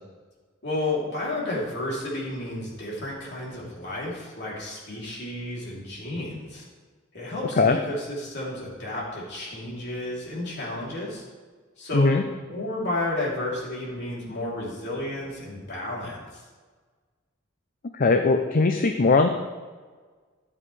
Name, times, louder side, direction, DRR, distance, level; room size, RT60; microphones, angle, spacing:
voice 1, 0.6-6.7 7.1-11.2 11.8-12.2 12.5-16.4, left 1 dB, 60° left, -5 dB, 3.0 m, -32 dB
voice 2, 18.0-19.3, left 3 dB, 45° left, 6 dB, 0.5 m, -19 dB
12.0 x 7.4 x 3.2 m, 1.4 s
head